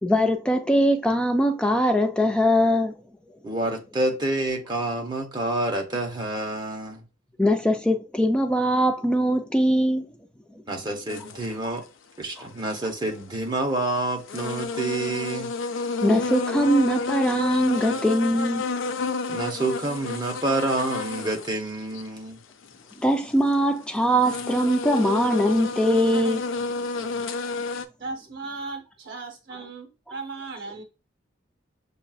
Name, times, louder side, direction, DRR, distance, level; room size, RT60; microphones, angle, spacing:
voice 1, 0.0-2.9 7.4-10.1 12.4-12.5 16.0-18.6 23.0-26.5, equal, 5° left, 0.3 m, -21 dB
voice 2, 3.4-7.0 10.7-11.8 12.2-15.5 19.3-22.4, right 2 dB, 25° right, 0.8 m, -28 dB
sound 1, 11.1-11.5 13.1-13.2 13.8-13.9 14.3-21.6 21.9-22.0 22.6-23.5 24.1-27.9, left 3 dB, 85° left, 0.5 m, -30 dB
voice 3, 28.0-30.8, right 3 dB, 55° right, 0.8 m, -36 dB
6.9 x 2.4 x 2.3 m
head